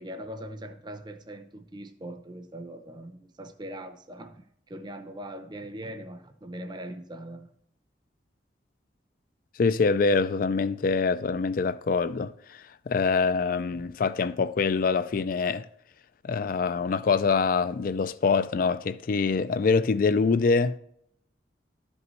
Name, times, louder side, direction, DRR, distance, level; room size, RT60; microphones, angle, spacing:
voice 1, 0.0-7.5, right 1 dB, 25° right, 0.6 m, -41 dB
voice 2, 9.6-15.7 16.2-20.8, left 4 dB, 50° left, 0.4 m, -25 dB
12.0 x 5.3 x 3.1 m
head